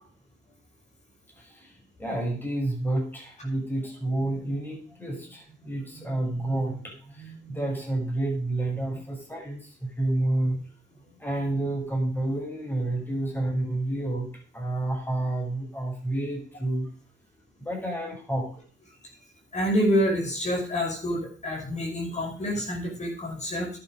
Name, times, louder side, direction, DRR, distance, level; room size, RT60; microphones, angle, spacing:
voice 1, 2.0-10.6 11.2-14.3 14.5-16.9 17.6-18.5, right 1 dB, 10° left, 0 dB, 5.6 m, -29 dB
voice 2, 19.5-23.7, equal, 35° left, 0 dB, 5.4 m, -27 dB
11.0 x 9.0 x 4.9 m, 0.44 s
cardioid pair, 90°, 20 cm